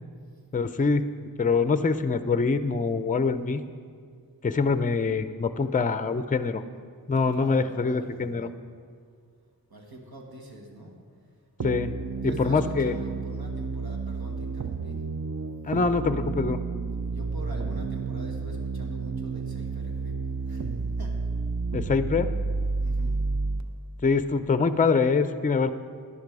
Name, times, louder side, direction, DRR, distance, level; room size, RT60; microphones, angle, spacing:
voice 1, 0.5-1.1 1.4-3.6 4.4-6.6 7.1-8.5 11.6-11.9 12.2-12.9 15.7-16.6 21.7-22.3 24.0-25.7, left 4 dB, 25° left, 11 dB, 0.4 m, -24 dB
voice 2, 7.2-8.4 9.7-11.0 12.1-15.0 17.0-20.1 20.4-20.7 21.0-21.1 22.8-23.2, right 1 dB, 85° right, 0 dB, 1.8 m, -44 dB
sound 1, 11.6-23.6, right 4 dB, 55° right, 0.6 m, -31 dB
11.0 x 10.5 x 4.8 m, 2.1 s
wide cardioid pair, 70°, 36 cm